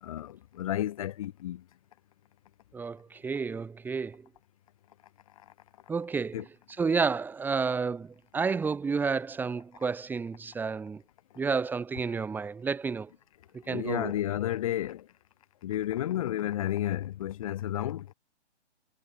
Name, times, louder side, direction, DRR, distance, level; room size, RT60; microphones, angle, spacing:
voice 1, 0.0-1.6 6.3-6.4 13.6-15.1 15.6-18.1, left 12 dB, 30° left, 3.7 m, -32 dB
voice 2, 2.7-4.2 5.9-6.4 6.8-11.0 11.4-13.1 13.5-14.1, right 5 dB, 5° right, 4.1 m, -30 dB
figure-of-eight pair, 140°, 34 cm